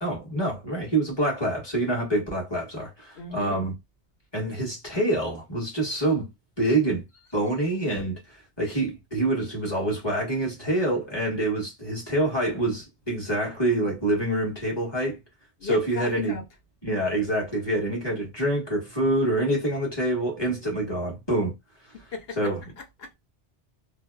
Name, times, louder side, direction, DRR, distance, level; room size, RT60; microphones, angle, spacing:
voice 1, 0.0-3.7 4.3-6.3 6.6-7.0 7.3-15.2 15.6-16.4 16.8-21.5 22.4-22.6, right 1 dB, 25° left, 1.2 m, -26 dB
voice 2, 3.1-3.6 8.6-8.7 15.6-16.4 17.0-17.1 21.9-23.1, left 4 dB, 60° left, 0.9 m, -38 dB
2.7 x 2.3 x 2.2 m
omnidirectional pair, 1.2 m